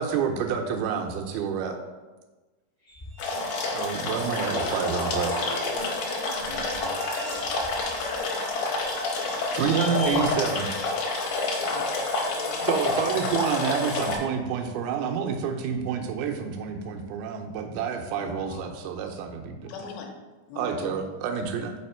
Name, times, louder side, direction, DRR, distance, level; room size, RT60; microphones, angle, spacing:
voice 1, 0.0-1.8 3.7-5.3 9.3-10.7 12.6-19.8 20.6-21.7, right 7 dB, 90° right, 4 dB, 2.5 m, -28 dB
sound 1, 2.9-3.8 4.2-4.3 4.7-8.5 8.8-14.1, left 1 dB, 35° left, 0.6 m, -43 dB
sound 2, 3.2-14.2, left 3 dB, 70° left, 1.7 m, -28 dB
voice 2, 3.3-3.6 4.5-7.7, left 1 dB, 70° right, -7 dB, 1.0 m, -42 dB
voice 3, 11.6-12.5 18.2-18.7 19.7-20.1 20.5-21.0, left 5 dB, 90° left, 2 dB, 2.6 m, -40 dB
5.8 x 4.2 x 4.3 m, 1.2 s
omnidirectional pair, 4.2 m